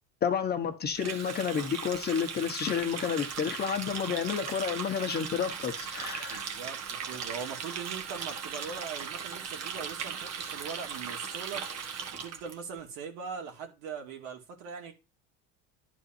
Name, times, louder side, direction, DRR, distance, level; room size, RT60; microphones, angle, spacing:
voice 1, 0.2-6.5, left 7 dB, 30° left, 1.2 m, -30 dB
Water tap faucet, 0.9-12.5, right 7 dB, 45° right, 1.6 m, -38 dB
voice 2, 6.3-11.7 12.1-14.9, right 6 dB, 80° right, 2.5 m, -41 dB
11.5 x 4.0 x 4.5 m
cardioid pair, 140°, 34 cm